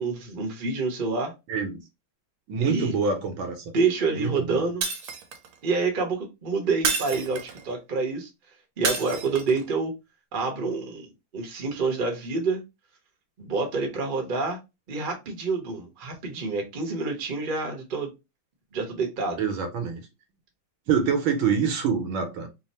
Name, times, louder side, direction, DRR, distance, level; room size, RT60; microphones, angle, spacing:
voice 1, 0.0-1.3 2.6-2.9 3.7-4.9 5.6-8.3 8.8-9.9 10.3-12.6 13.4-14.6 14.9-18.1 18.7-19.4, right 4 dB, 40° right, 0.8 m, -27 dB
voice 2, 1.5-1.8 2.5-3.7 4.2-4.6 19.4-20.1 20.9-22.5, right 6 dB, 70° right, 1.6 m, -26 dB
Shatter, 4.8-5.5 6.8-7.7 8.9-9.6, right 5 dB, 90° right, 1.6 m, -29 dB
3.8 x 2.1 x 4.1 m
omnidirectional pair, 2.3 m